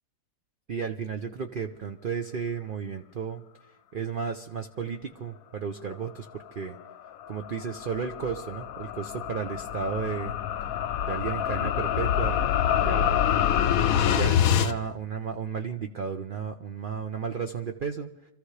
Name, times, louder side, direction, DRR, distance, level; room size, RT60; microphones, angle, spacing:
voice 1, 0.7-3.4 3.9-6.8 7.3-10.4 11.0-12.4 12.7-13.2 14.1-18.1, right 6 dB, 50° right, 5 dB, 0.6 m, -33 dB
sound 1, 6.9-14.7, left 9 dB, 65° left, 1.1 m, -26 dB
26.5 x 14.5 x 3.3 m, 0.90 s
omnidirectional pair, 1.7 m